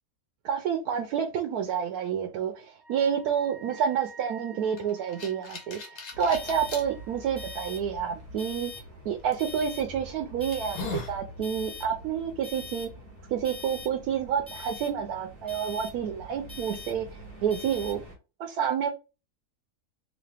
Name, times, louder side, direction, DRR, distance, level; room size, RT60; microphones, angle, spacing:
voice 1, 0.4-8.7 9.0-12.9 13.3-18.0 18.4-18.9, right 8 dB, 80° right, 1.1 m, -29 dB
Wind instrument woodwind instrument, 2.8-7.7, right 3 dB, 55° right, 1.0 m, -51 dB
sound 1, 4.8-6.8 7.5-7.6 9.3-9.5 10.1-10.2 10.5-11.2, left 3 dB, 80° left, 1.5 m, -37 dB
sound 2, 6.1-18.1, left 2 dB, 10° left, 1.9 m, -43 dB
4.0 x 2.8 x 3.3 m
omnidirectional pair, 1.6 m